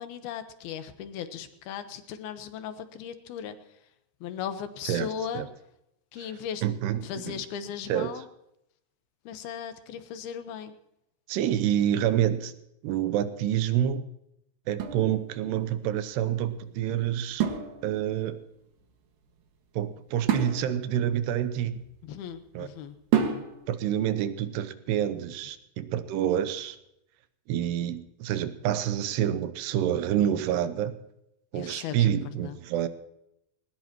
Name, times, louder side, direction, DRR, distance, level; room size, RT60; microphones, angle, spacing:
voice 1, 0.0-3.6 4.2-5.5 6.1-6.6 7.0-8.2 9.3-10.7 22.0-23.4 31.5-32.6, left 8 dB, 75° left, 9 dB, 2.9 m, -37 dB
voice 2, 6.6-7.4 7.9-8.1 11.3-12.5 12.8-14.0 14.7-17.4 17.8-18.4 19.8-21.7 22.5-22.7 23.7-26.8 27.5-30.9 31.5-32.9, right 10 dB, 85° right, 11 dB, 2.9 m, -27 dB
sound 1, 14.7-15.8 17.4-18.3 20.3-22.3 23.1-23.9, right 8 dB, 65° right, 3.2 m, -30 dB
21.0 x 19.0 x 3.0 m, 0.82 s
omnidirectional pair, 4.7 m